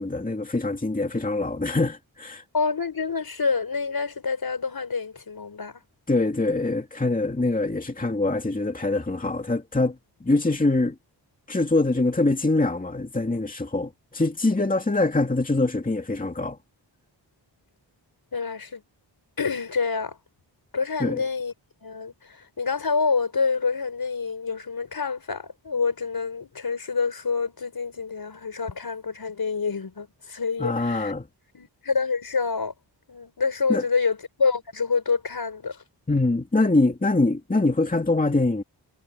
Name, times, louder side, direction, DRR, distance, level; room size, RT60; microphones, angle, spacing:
voice 1, 0.0-2.4 6.1-10.9 11.5-16.6 21.0-21.2 30.6-31.3 33.7-33.8 36.1-38.6, left 2 dB, 20° left, 2.4 m, -24 dB
voice 2, 2.5-5.8 18.3-18.8 19.4-20.2 20.7-21.5 21.8-31.1 31.5-32.7 33.1-35.8, left 5 dB, 55° left, 4.8 m, -27 dB
wide cardioid pair, 100°, 43 cm